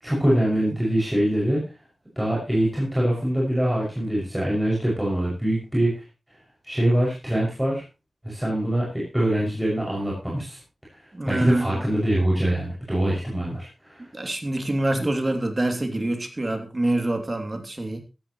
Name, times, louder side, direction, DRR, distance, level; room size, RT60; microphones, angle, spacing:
voice 1, 0.0-1.6 2.2-6.0 6.6-7.8 8.2-10.6 11.3-14.0 15.0-15.1, right 1 dB, 10° right, -4 dB, 6.4 m, -24 dB
voice 2, 11.1-11.8 14.1-18.0, right 1 dB, 35° right, 5 dB, 2.9 m, -26 dB
15.5 x 13.5 x 3.1 m, 0.29 s
wide cardioid pair, 70°, 0 cm